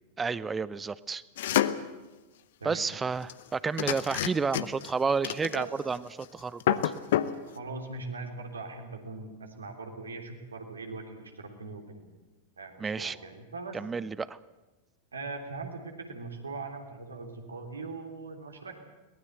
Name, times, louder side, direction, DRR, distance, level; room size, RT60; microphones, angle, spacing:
voice 1, 0.2-1.2 2.6-6.9 12.8-13.2 13.7-14.4, right 5 dB, 15° right, 19 dB, 0.7 m, -31 dB
sound 1, 1.4-1.9 3.3-3.4 3.8-4.9 5.2-6.0 6.2-6.3 6.6-7.4, left 12 dB, 55° left, 1.0 m, -28 dB
voice 2, 7.5-12.1 12.6-13.8 15.1-18.8, right 3 dB, 75° right, 3 dB, 3.3 m, -40 dB
22.0 x 19.0 x 8.0 m, 1.1 s
figure-of-eight pair, 90°, 0 cm